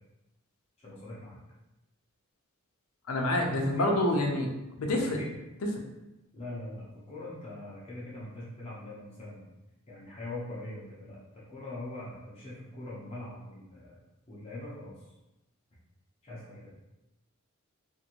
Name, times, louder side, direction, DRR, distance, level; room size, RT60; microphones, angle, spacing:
voice 1, 0.8-1.4 3.5-4.0 5.2-5.3 6.3-9.5 9.9-11.2 11.5-14.0 14.3-14.9 16.2-16.7, left 2 dB, 30° left, -8 dB, 0.7 m, -42 dB
voice 2, 3.1-4.5 4.8-5.2, left 1 dB, 75° left, 2 dB, 0.6 m, -27 dB
2.6 x 2.6 x 2.9 m, 0.96 s
head